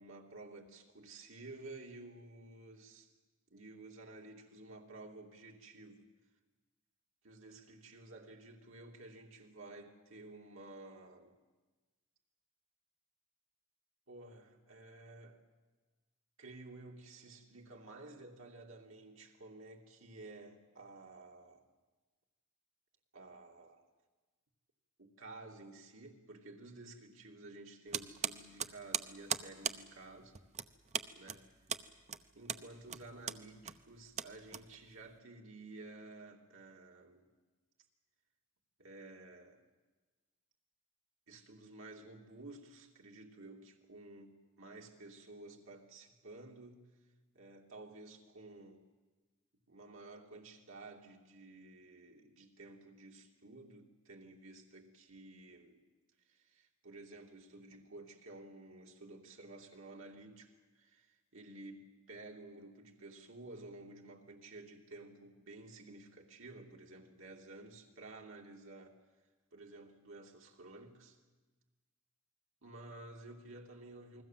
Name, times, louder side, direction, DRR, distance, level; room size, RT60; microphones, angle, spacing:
voice 1, 0.0-3.1 3.5-6.1 7.2-11.3 14.1-15.4 16.4-21.7 23.1-23.9 25.0-30.4 31.2-31.5 32.3-37.3 38.8-39.6 41.3-46.9 47.3-48.9 49.7-55.8 56.2-69.0 69.5-71.2 72.6-74.2, right 2 dB, 70° right, 1 dB, 2.9 m, -53 dB
sound 1, 27.9-35.1, right 7 dB, 35° right, 0.9 m, -40 dB
28.5 x 21.5 x 7.6 m, 1.3 s
head